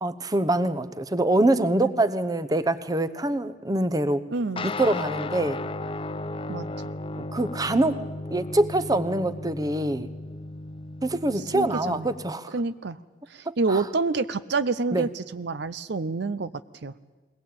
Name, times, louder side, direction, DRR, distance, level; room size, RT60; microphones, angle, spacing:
voice 1, 0.0-4.2 4.6-5.6 7.3-8.0 8.3-10.1 11.0-12.5 13.5-13.8 14.9-15.1, right 2 dB, 20° right, 13 dB, 0.9 m, -24 dB
voice 2, 4.3-4.7 6.5-6.7 11.3-12.1 12.5-13.0 13.3-16.9, right 3 dB, 60° right, 14 dB, 0.6 m, -28 dB
sound 1, 4.6-12.4, left 2 dB, 30° left, 0.6 m, -35 dB
21.5 x 18.5 x 8.7 m, 1.3 s
head